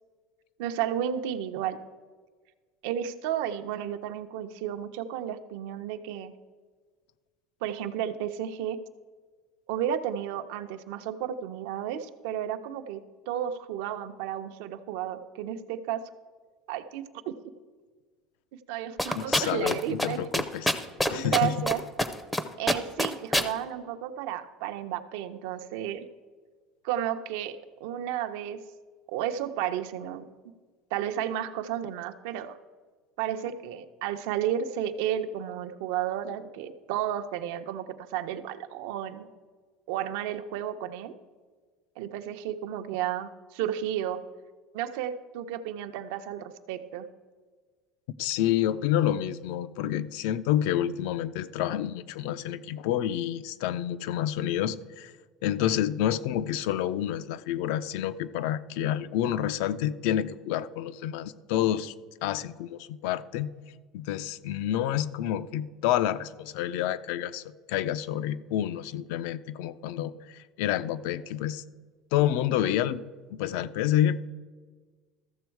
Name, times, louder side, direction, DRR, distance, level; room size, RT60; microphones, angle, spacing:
voice 1, 0.6-1.8 2.8-6.3 7.6-8.8 9.7-16.1 16.7-17.3 18.7-20.2 21.1-21.8 22.6-26.1 26.8-28.6 29.1-30.2 30.9-32.6 33.2-39.3 39.9-41.1 42.0-44.2 44.7-47.1, right 10 dB, 75° right, 8 dB, 0.7 m, -32 dB
sound 1, 19.0-19.7 20.0-20.1 20.3-21.7 22.0-22.4 22.7-23.5, left 1 dB, 5° left, 0.5 m, -24 dB
voice 2, 19.2-20.7 21.1-21.6 48.2-55.1 55.4-61.9 62.2-63.5 63.9-67.4 67.7-71.6 72.1-73.0 73.3-74.2, left 11 dB, 70° left, 14 dB, 0.4 m, -28 dB
13.5 x 7.1 x 4.6 m, 1.4 s
cardioid pair, 170°, 0 cm